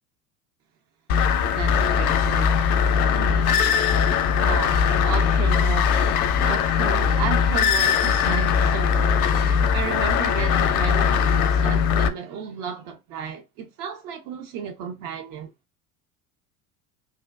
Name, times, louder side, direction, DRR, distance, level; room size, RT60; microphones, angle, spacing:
sound 1, 1.1-12.1, left 7 dB, 70° left, 0.6 m, -20 dB
voice 1, 1.5-2.8 3.1-4.1 4.4-6.0 6.4-15.5, right 7 dB, 50° right, 0.7 m, -33 dB
3.5 x 2.2 x 2.3 m
hypercardioid pair, 75°, 45 cm